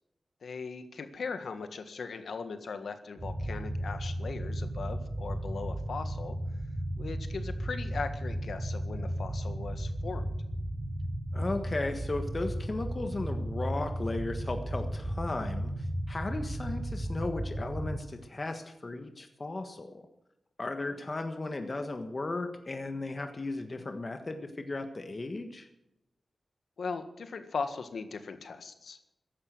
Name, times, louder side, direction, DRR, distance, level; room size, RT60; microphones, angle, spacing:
voice 1, 0.4-6.4 7.0-10.3 26.8-29.0, left 4 dB, 80° left, 9 dB, 1.7 m, -39 dB
sound 1, 3.2-18.0, right 1 dB, 20° right, 3.4 m, -35 dB
voice 2, 11.3-20.1 20.6-25.7, left 2 dB, 35° left, 6 dB, 1.4 m, -36 dB
14.5 x 11.5 x 7.7 m, 0.86 s
wide cardioid pair, 110°, 0 cm